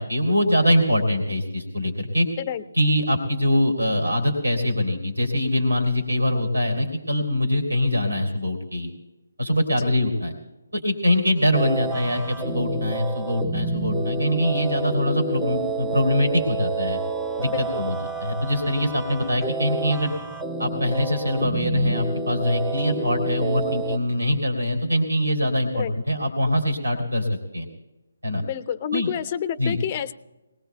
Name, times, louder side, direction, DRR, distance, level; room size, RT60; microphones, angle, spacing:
voice 1, 0.0-2.3 2.8-8.9 9.4-10.3 10.7-17.0 17.4-20.1 20.6-27.3 27.5-27.7 28.2-28.4 28.9-29.1 29.6-29.8, left 1 dB, 85° right, 5 dB, 3.3 m, -23 dB
sound 1, 11.5-24.0, right 4 dB, 10° right, 0.7 m, -29 dB
voice 2, 17.5-17.8 25.7-25.9 28.4-30.1, left 9 dB, 30° left, 16 dB, 0.6 m, -29 dB
21.5 x 20.0 x 2.3 m, 1.1 s
figure-of-eight pair, 150°, 0 cm